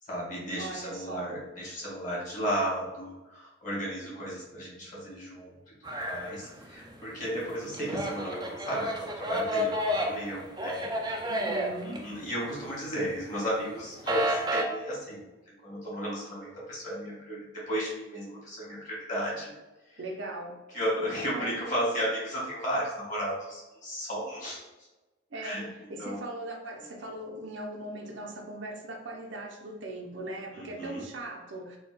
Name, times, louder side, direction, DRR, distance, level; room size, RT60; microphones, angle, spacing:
voice 1, 0.0-5.6 6.0-10.9 11.8-15.2 15.6-19.5 19.9-20.0 20.7-24.6 25.3-26.2 30.5-31.0, equal, 40° left, -6 dB, 1.5 m, -34 dB
voice 2, 0.6-1.3 11.3-12.0 20.0-20.6 21.4-21.5 25.3-25.6 25.9-31.8, right 1 dB, 70° right, 0 dB, 0.6 m, -39 dB
sound 1, 5.8-6.9 7.3-12.7 13.1-14.6, equal, 20° right, 0.3 m, -31 dB
4.0 x 2.2 x 2.2 m, 1.1 s
head